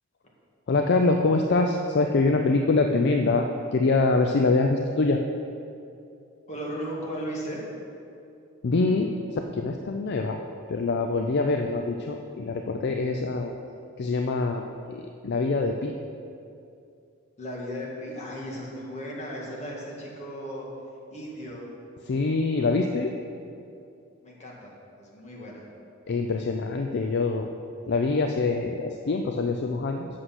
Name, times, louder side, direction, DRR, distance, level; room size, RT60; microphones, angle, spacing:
voice 1, 0.7-5.2 8.6-9.1 9.5-10.4 10.7-13.5 14.0-14.6 14.9-15.9 22.1-23.1 26.1-27.5 27.9-30.1, left 3 dB, 55° left, 4 dB, 0.4 m, -24 dB
voice 2, 6.5-7.6 17.4-20.7 21.1-21.7 24.2-25.6, equal, 35° left, -4 dB, 1.8 m, -36 dB
8.0 x 6.4 x 5.8 m, 2.6 s
head